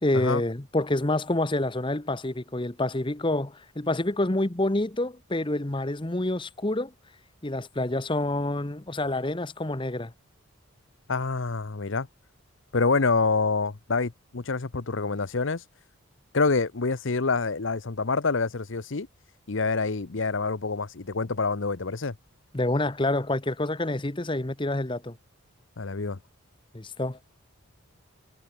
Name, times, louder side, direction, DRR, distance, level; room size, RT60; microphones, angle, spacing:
voice 1, 0.0-6.9 7.4-10.1 22.5-25.2 26.7-27.2, left 1 dB, 20° left, 1.0 m, -27 dB
voice 2, 11.1-12.1 12.7-15.6 16.3-19.1 19.5-22.1 25.8-26.2, left 4 dB, 60° left, 0.8 m, -26 dB
head